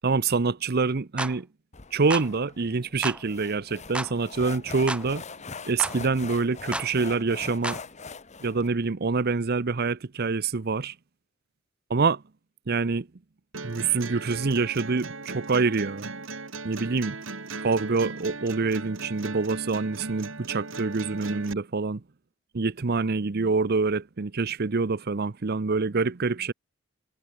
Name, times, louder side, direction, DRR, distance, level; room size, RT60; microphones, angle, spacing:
voice 1, 0.0-1.5 1.9-5.2 5.7-7.8 8.4-10.9 11.9-12.2 12.7-13.1 13.6-16.1 16.6-17.2 17.6-22.0 22.5-26.5, right 4 dB, 50° right, 0.7 m, -26 dB
sound 1, 1.2-1.4 2.1-2.3 3.0-3.2 3.9-4.1 4.9-5.1 5.8-6.0 6.7-6.9 7.6-7.8, right 1 dB, 5° right, 0.6 m, -31 dB
sound 2, 1.7-8.7, left 4 dB, 35° left, 1.4 m, -42 dB
sound 3, 13.5-21.5, right 3 dB, 65° right, 3.0 m, -37 dB
head